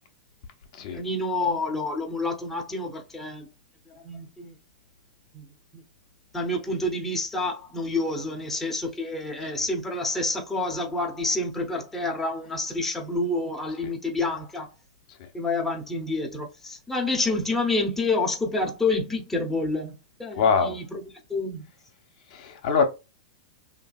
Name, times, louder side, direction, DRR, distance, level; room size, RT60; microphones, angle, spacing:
voice 1, 0.9-3.5 3.9-4.5 5.3-5.4 5.7-5.8 6.3-14.7 15.3-21.0 21.3-21.6, left 2 dB, 5° left, 0.8 m, -28 dB
voice 2, 20.4-20.7 22.3-22.8, left 5 dB, 60° left, 0.7 m, -23 dB
2.7 x 2.5 x 2.3 m
hypercardioid pair, 115°, 4 cm